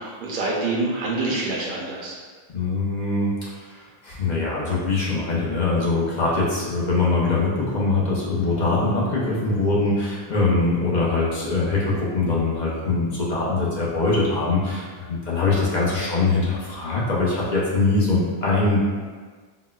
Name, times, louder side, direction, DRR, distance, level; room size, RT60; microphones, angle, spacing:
voice 1, 0.0-2.2, right 2 dB, 60° right, -4 dB, 0.7 m, -26 dB
voice 2, 2.5-18.8, left 3 dB, 50° left, -6 dB, 0.7 m, -22 dB
3.9 x 2.1 x 2.3 m, 1.5 s
omnidirectional pair, 1.0 m